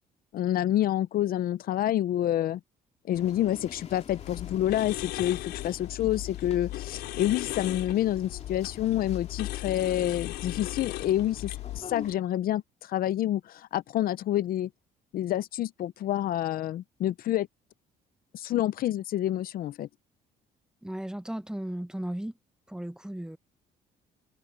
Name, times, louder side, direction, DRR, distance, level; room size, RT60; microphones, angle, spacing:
voice 1, 0.3-2.6 3.1-14.7 15.1-17.5 18.3-19.9, left 12 dB, 60° left, 0.7 m, -28 dB
sound 1, 3.1-12.2, left 7 dB, 40° left, 2.3 m, -46 dB
sound 2, 4.1-11.8, left 17 dB, 85° left, 4.2 m, -37 dB
voice 2, 20.8-22.3 22.7-23.4, right 1 dB, 5° right, 0.9 m, -35 dB
cardioid pair, 110°, 17 cm